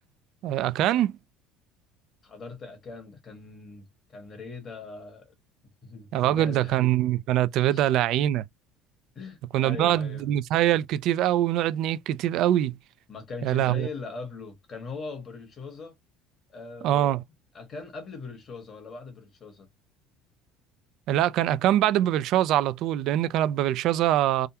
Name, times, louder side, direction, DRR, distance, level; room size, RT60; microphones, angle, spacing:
voice 1, 0.4-1.1 6.1-8.4 9.5-12.7 13.4-13.9 16.8-17.2 21.1-24.5, right 12 dB, 60° right, 0.4 m, -23 dB
voice 2, 2.2-5.3 5.8-6.8 7.7-7.9 9.1-10.3 13.1-15.9 16.5-17.2 17.5-19.7, left 4 dB, 30° left, 1.4 m, -40 dB
3.5 x 2.1 x 2.7 m
cardioid pair, 135°, 0 cm